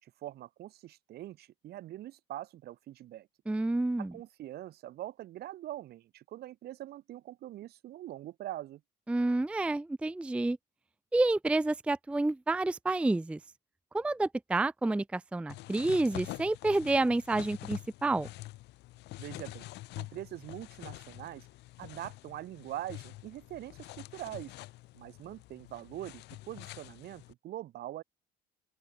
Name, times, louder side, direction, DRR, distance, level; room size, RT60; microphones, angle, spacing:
voice 1, 0.0-3.3 4.0-8.8 19.2-19.7 20.0-21.5 21.8-24.5 24.9-28.0, right 14 dB, 70° right, 5.3 m, -43 dB
voice 2, 3.5-4.1 9.1-10.6 11.1-13.4 13.9-18.3, right 2 dB, 5° right, 0.4 m, -29 dB
sound 1, 15.5-27.3, left 18 dB, 85° left, 2.7 m, -46 dB
open air
cardioid pair, 110°, 17 cm